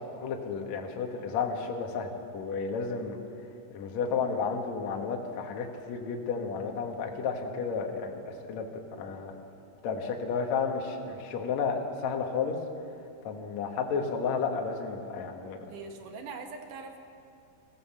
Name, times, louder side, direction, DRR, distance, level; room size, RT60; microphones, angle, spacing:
voice 1, 0.0-3.2 3.7-9.3 9.8-12.6 13.2-15.6, left 5 dB, 55° left, 2 dB, 2.4 m, -32 dB
voice 2, 15.5-17.0, right 4 dB, 65° right, 4 dB, 2.8 m, -42 dB
23.5 x 15.5 x 7.4 m, 2.6 s
omnidirectional pair, 4.4 m